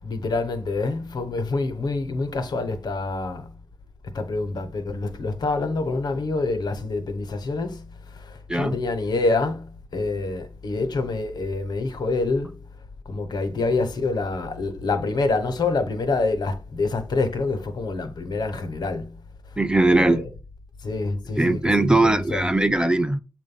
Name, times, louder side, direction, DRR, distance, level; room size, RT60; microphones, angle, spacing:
voice 1, 0.0-3.5 4.1-7.9 8.1-12.6 13.1-19.2 19.9-20.3 20.8-22.4, left 3 dB, 80° left, 1.0 m, -26 dB
voice 2, 19.6-20.2 21.4-23.2, right 2 dB, 10° right, 0.4 m, -20 dB
7.7 x 2.6 x 5.5 m
wide cardioid pair, 155°, 7 cm